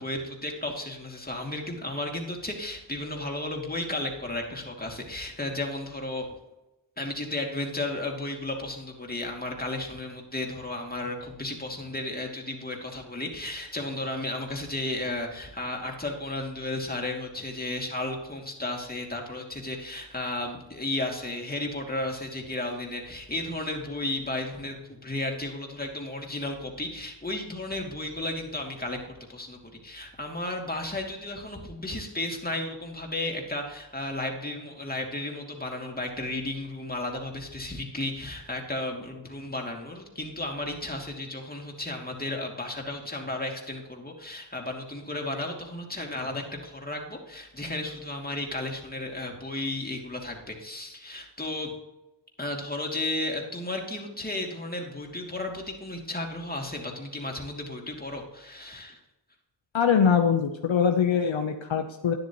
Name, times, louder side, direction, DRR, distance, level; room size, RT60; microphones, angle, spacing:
voice 1, 0.0-6.3 7.0-51.7 52.4-59.0, left 2 dB, 20° left, 0 dB, 2.7 m, -34 dB
voice 2, 59.7-62.1, left 7 dB, 65° left, 6 dB, 0.9 m, -23 dB
12.0 x 9.9 x 3.0 m, 0.97 s
cardioid pair, 55°, 49 cm